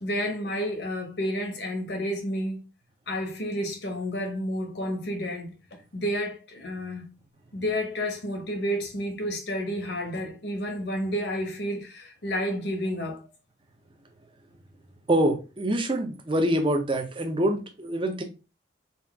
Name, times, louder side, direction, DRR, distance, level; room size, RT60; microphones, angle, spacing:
voice 1, 0.0-2.6 3.1-7.1 7.5-13.2, equal, 60° left, 1.1 m, -30 dB
voice 2, 15.1-18.2, right 1 dB, 25° right, 0.7 m, -25 dB
4.2 x 2.5 x 3.5 m
head